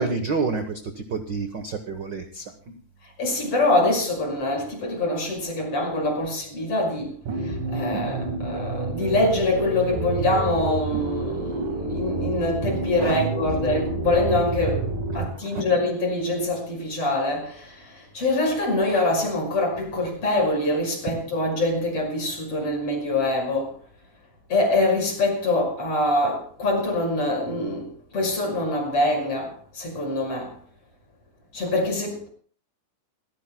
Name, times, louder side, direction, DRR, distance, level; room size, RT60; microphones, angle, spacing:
voice 1, 0.0-2.7 13.0-13.2 15.1-15.6, right 4 dB, 60° right, 1.1 m, -29 dB
voice 2, 3.2-7.1 7.4-23.8 24.5-30.6 31.5-32.3, left 2 dB, 45° left, 6.6 m, -24 dB
sound 1, 7.3-15.3, right 2 dB, 85° right, 3.6 m, -29 dB
28.5 x 15.0 x 2.3 m
omnidirectional pair, 3.7 m